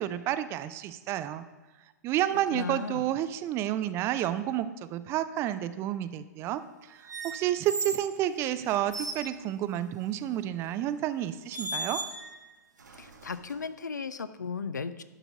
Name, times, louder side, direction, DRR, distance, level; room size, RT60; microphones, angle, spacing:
voice 1, 0.0-1.4 2.0-6.6 7.0-12.0, right 12 dB, 25° right, 13 dB, 0.4 m, -30 dB
voice 2, 2.5-3.0 12.9-15.0, left 5 dB, 75° left, 14 dB, 0.5 m, -36 dB
sound 1, 7.1-8.1 8.7-9.3 10.6-10.8 11.5-12.4 12.8-13.7, right 2 dB, 75° right, 1.0 m, -37 dB
11.5 x 4.0 x 5.9 m, 1.2 s
figure-of-eight pair, 105°, 10 cm